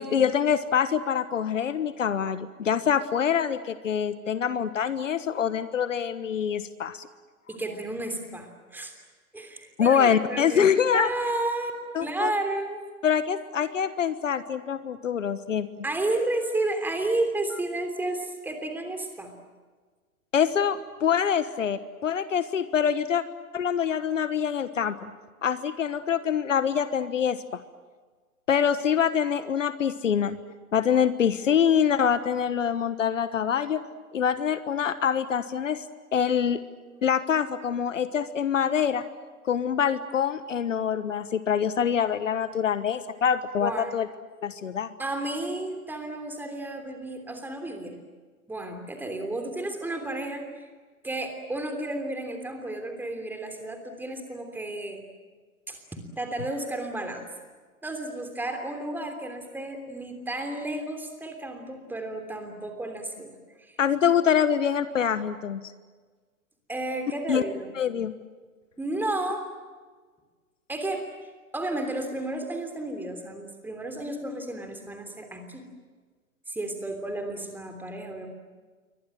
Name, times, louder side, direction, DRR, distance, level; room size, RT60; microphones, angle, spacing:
voice 1, 0.0-7.1 9.8-11.1 11.9-12.3 13.0-15.7 20.3-23.2 23.5-25.1 25.4-27.4 28.5-30.4 30.7-33.8 34.1-35.8 36.1-36.6 37.0-39.0 39.4-44.1 44.4-44.9 63.8-65.6 67.3-67.4 67.8-68.1, left 8 dB, 60° left, 13 dB, 1.3 m, -25 dB
voice 2, 7.5-8.9 9.3-10.7 10.9-11.7 12.0-12.8 15.8-19.3 43.6-44.0 45.0-48.0 48.5-50.7 51.0-55.0 55.7-57.3 57.8-63.8 66.7-67.8 68.8-69.4 70.7-71.0 71.5-75.7 76.5-78.3, right 2 dB, 5° right, 5 dB, 3.2 m, -32 dB
28.5 x 24.0 x 7.7 m, 1.4 s
figure-of-eight pair, 120°, 43 cm